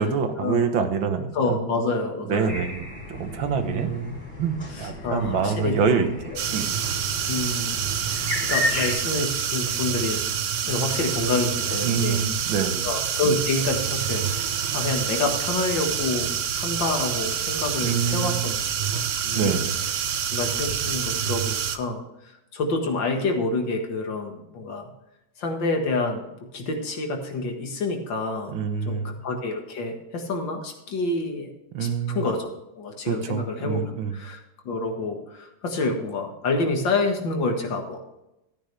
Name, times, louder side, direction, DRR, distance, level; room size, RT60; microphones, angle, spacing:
voice 1, 0.0-1.6 2.3-3.9 4.4-6.7 11.8-12.9 17.8-18.5 19.3-19.8 28.5-29.2 31.7-32.3 33.1-34.2, right 6 dB, 80° right, 7 dB, 1.9 m, -26 dB
voice 2, 1.3-2.5 3.7-4.1 4.8-6.4 7.3-7.8 8.1-10.2 10.6-12.2 12.8-16.3 16.6-18.5 18.8-19.6 20.3-24.9 25.4-28.6 28.9-31.5 31.8-32.5 32.8-34.4 34.7-38.0, left 2 dB, 70° left, 3 dB, 2.4 m, -28 dB
sound 1, 2.5-8.9, left 2 dB, 35° left, 3.3 m, -33 dB
sound 2, 6.4-21.8, right 8 dB, 60° right, 0.8 m, -27 dB
13.5 x 9.5 x 3.4 m, 0.89 s
omnidirectional pair, 2.1 m